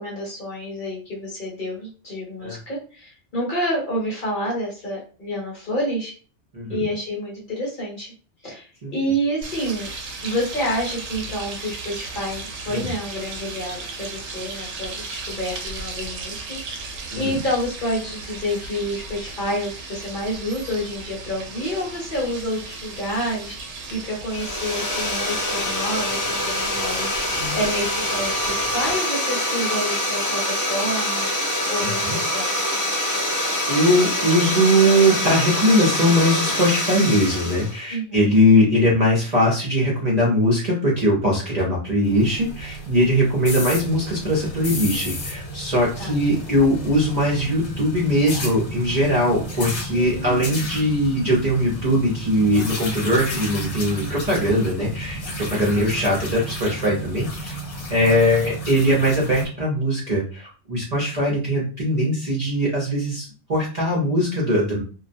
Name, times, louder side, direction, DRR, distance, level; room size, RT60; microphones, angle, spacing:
voice 1, 0.0-6.2 6.7-8.1 8.4-9.9 10.2-31.3 31.7-32.6 37.9-38.3 46.0-46.1 49.9-50.6 55.8-55.9, equal, 45° left, -3 dB, 0.9 m, -28 dB
voice 2, 6.5-6.8 8.8-8.9 12.7-12.9 17.1-17.4 27.4-27.6 31.8-32.2 33.7-55.2 55.5-57.5 57.9-64.8, equal, 40° right, -4 dB, 0.7 m, -20 dB
sound 1, 9.4-28.9, right 3 dB, 80° right, 0.9 m, -36 dB
sound 2, 24.3-37.8, left 1 dB, 25° left, 0.4 m, -25 dB
sound 3, 42.0-59.5, equal, 75° left, 1.0 m, -32 dB
2.3 x 2.1 x 2.6 m, 0.37 s
omnidirectional pair, 1.2 m